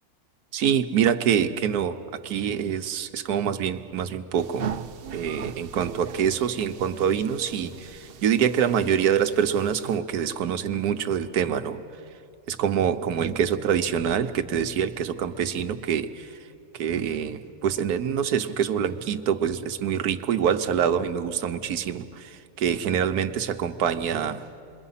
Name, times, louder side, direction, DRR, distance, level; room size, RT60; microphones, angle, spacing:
voice 1, 0.5-2.0 2.2-4.7 5.1-11.8 12.5-16.3 16.8-24.4, right 8 dB, 90° right, 10 dB, 1.3 m, -25 dB
sound 1, 4.4-10.0, right 7 dB, 55° right, 0.7 m, -39 dB
28.0 x 22.0 x 5.7 m, 2.5 s
omnidirectional pair, 1.6 m